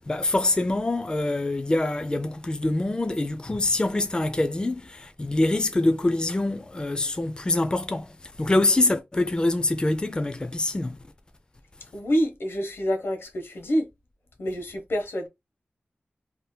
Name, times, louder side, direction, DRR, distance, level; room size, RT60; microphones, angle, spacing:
voice 1, 0.1-11.0, left 2 dB, 20° left, 0.4 m, -25 dB
voice 2, 11.9-13.9 14.4-15.3, equal, 85° left, 1.0 m, -27 dB
3.6 x 2.7 x 2.2 m
wide cardioid pair, 100°, 4 cm